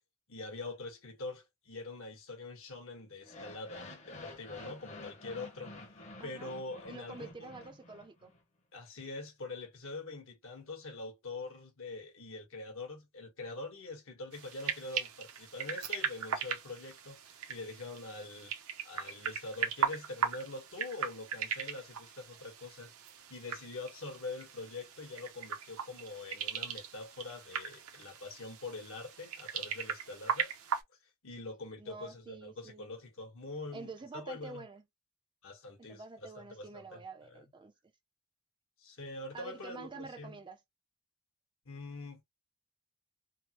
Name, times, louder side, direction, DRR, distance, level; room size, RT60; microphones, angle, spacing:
voice 1, 0.3-5.7 6.2-7.6 8.7-18.5 18.8-22.9 23.3-30.5 31.2-34.6 35.4-37.4 38.8-40.4 41.6-42.2, left 2 dB, 60° left, 1.2 m, -44 dB
sound 1, 3.2-8.4, left 2 dB, 30° left, 0.8 m, -50 dB
voice 2, 6.2-6.5 6.9-8.3 31.8-32.9 33.7-34.8 35.9-37.7 39.3-40.6, right 3 dB, 20° right, 0.4 m, -47 dB
sound 2, 14.3-30.8, right 7 dB, 70° right, 0.7 m, -39 dB
3.3 x 2.1 x 2.9 m
head